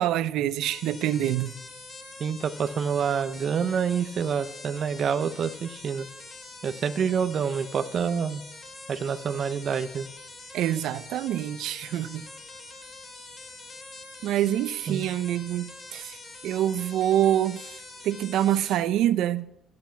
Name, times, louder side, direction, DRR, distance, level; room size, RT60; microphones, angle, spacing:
voice 1, 0.0-1.5 10.5-12.2 14.2-16.2 16.4-17.7 18.0-19.5, right 12 dB, 85° right, 0.7 m, -26 dB
sound 1, 0.6-18.8, left 3 dB, 35° left, 2.3 m, -45 dB
voice 2, 2.2-6.1 6.6-8.4 8.9-10.1 14.9-15.0, right 7 dB, 45° right, 0.7 m, -27 dB
13.0 x 10.5 x 5.9 m
cardioid pair, 150°, 0 cm